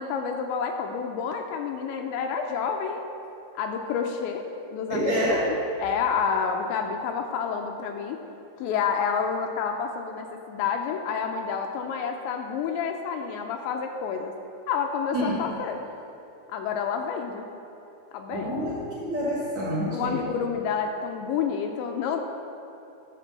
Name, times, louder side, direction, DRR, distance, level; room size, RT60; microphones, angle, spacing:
voice 1, 0.0-3.1 3.6-5.5 5.8-8.2 8.6-14.3 14.7-15.8 16.5-17.5 18.1-18.6 19.9-22.2, left 6 dB, 85° left, 4 dB, 2.8 m, -29 dB
voice 2, 4.9-5.5 15.1-15.4 18.3-20.2, equal, 50° right, -7 dB, 2.4 m, -27 dB
11.0 x 6.8 x 7.3 m, 2.7 s
omnidirectional pair, 5.4 m